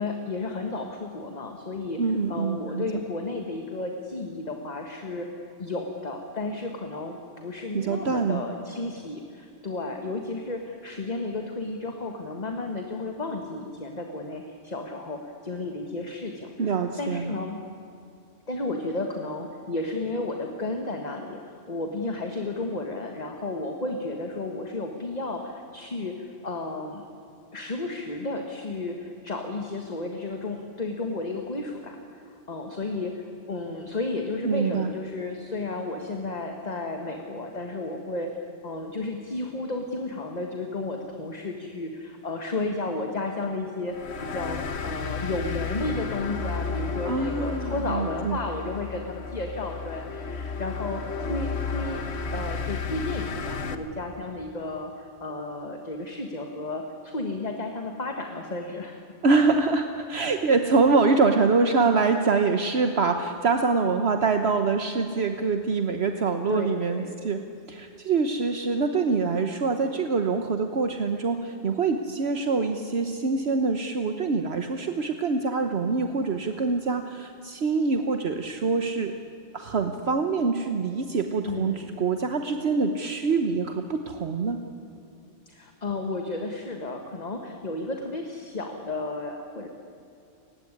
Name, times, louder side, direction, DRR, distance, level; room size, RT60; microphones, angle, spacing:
voice 1, 0.0-17.6 18.5-27.0 27.5-38.3 38.6-52.0 52.3-59.0 66.5-67.1 81.5-82.0 85.5-89.7, left 2 dB, 35° left, 3 dB, 1.7 m, -33 dB
voice 2, 2.0-2.8 7.7-8.4 16.6-17.3 34.4-34.9 47.0-48.4 59.2-79.1 79.5-84.6, right 4 dB, 65° right, 6 dB, 1.3 m, -25 dB
sound 1, 43.9-53.8, left 5 dB, 65° left, 1.5 m, -32 dB
29.0 x 16.5 x 9.8 m, 2.7 s
omnidirectional pair, 1.2 m